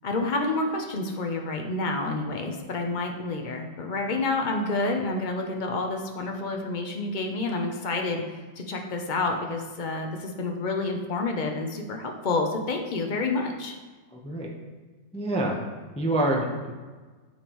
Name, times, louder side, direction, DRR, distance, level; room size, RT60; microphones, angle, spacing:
voice 1, 0.0-13.7, left 3 dB, 70° left, 2 dB, 0.4 m, -29 dB
voice 2, 14.1-14.5 15.1-15.6 16.0-16.7, right 1 dB, 10° left, -1 dB, 0.4 m, -26 dB
9.4 x 7.1 x 3.0 m, 1.4 s
omnidirectional pair, 1.9 m